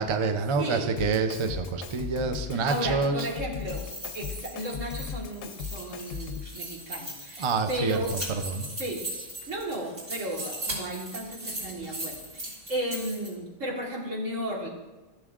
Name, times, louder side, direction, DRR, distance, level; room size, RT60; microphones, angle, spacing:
voice 1, 0.0-3.3 7.4-8.0 8.5-8.7, right 4 dB, 40° right, 7 dB, 0.4 m, -27 dB
voice 2, 0.6-0.9 2.5-3.8 4.1-8.2 8.8-9.1 9.5-14.7, right 1 dB, 85° right, -2 dB, 1.9 m, -34 dB
Drum kit, 1.0-6.6, left 6 dB, 60° left, 0.7 m, -38 dB
sound 1, 3.5-13.3, right 1 dB, 65° right, 3.7 m, -39 dB
14.5 x 6.8 x 2.4 m, 1.2 s
omnidirectional pair, 1.3 m